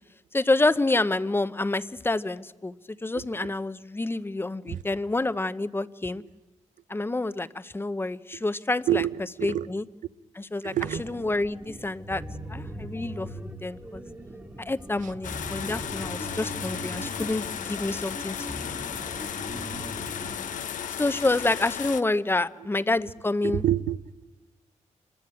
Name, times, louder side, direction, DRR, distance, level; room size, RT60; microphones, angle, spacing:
voice 1, 0.3-6.2 6.9-9.0 9.4-9.8 10.4-10.7 11.0-12.2 12.5-13.3 13.6-14.0 14.7-18.5 20.9-23.6, left 2 dB, 15° left, 14 dB, 0.8 m, -28 dB
voice 2, 3.1-3.5 4.7-4.8 6.1-6.3 8.9-9.7 10.6-11.2 15.0-15.1 20.5-20.7 23.4-24.2, right 12 dB, 90° right, 15 dB, 0.7 m, -29 dB
sound 1, 10.8-20.5, right 1 dB, 15° right, 1.8 m, -40 dB
sound 2, 15.2-22.0, left 9 dB, 85° left, 0.9 m, -35 dB
25.0 x 20.5 x 8.8 m, 1.1 s
cardioid pair, 85°, 13 cm